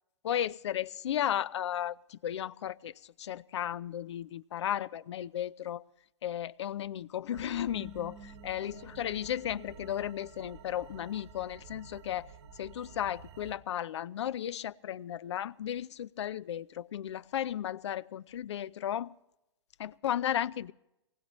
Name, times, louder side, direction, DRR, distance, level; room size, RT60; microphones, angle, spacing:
voice 1, 0.2-2.9 3.2-5.8 6.2-8.2 8.4-12.3 12.6-19.1 19.8-20.7, left 11 dB, 70° left, 0.6 m, -34 dB
sound 1, 7.3-13.6, right 5 dB, 65° right, 1.8 m, -50 dB
23.5 x 19.5 x 3.1 m
hypercardioid pair, 125°, 15 cm